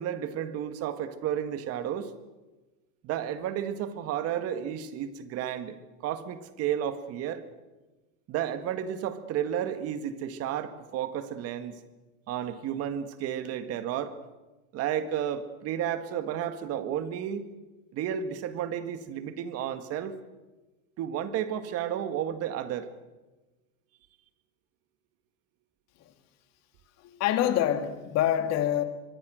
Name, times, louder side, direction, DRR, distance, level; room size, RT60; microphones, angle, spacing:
voice 1, 0.0-2.1 3.0-7.4 8.3-11.8 12.3-14.2 14.7-17.5 17.9-20.2 21.0-22.9, right 10 dB, 30° right, 1.8 m, -32 dB
voice 2, 27.0-28.8, left 11 dB, 35° left, 2.2 m, -26 dB
24.0 x 24.0 x 6.4 m
supercardioid pair, 150°, 45 cm